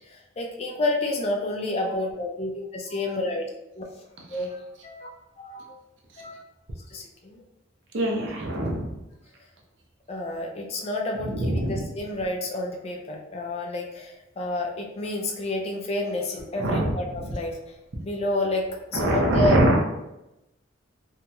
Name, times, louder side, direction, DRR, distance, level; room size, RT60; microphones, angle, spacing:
voice 1, 0.1-3.5 3.7-3.8 4.3-5.1 5.4-5.8 6.2-6.4 6.9-7.4 10.1-17.6 18.0-18.6 18.9-19.6, left 2 dB, 30° left, 0 dB, 0.4 m, -29 dB
voice 2, 7.9-8.9 11.2-11.8 16.6-17.3 18.9-19.8, right 1 dB, 75° right, -1 dB, 0.6 m, -24 dB
2.9 x 2.8 x 2.2 m, 0.93 s
head